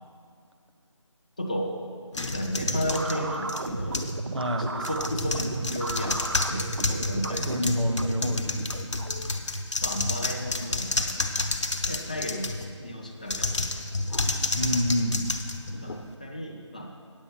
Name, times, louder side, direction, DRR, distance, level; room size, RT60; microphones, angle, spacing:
voice 1, 1.4-1.8 2.3-4.1 4.4-8.3 9.8-11.4 11.9-14.3 15.7-16.9, equal, 15° left, 1 dB, 0.4 m, -34 dB
sound 1, 2.1-4.2 4.8-12.7 13.2-16.1, left 2 dB, 65° left, 0.8 m, -30 dB
sound 2, 2.5-9.3, right 2 dB, 45° right, 0.5 m, -34 dB
voice 2, 4.3-4.7 7.3-8.6 14.5-15.2, equal, 65° right, 5 dB, 1.0 m, -27 dB
9.1 x 8.1 x 5.7 m, 2.2 s
figure-of-eight pair, 155°, 16 cm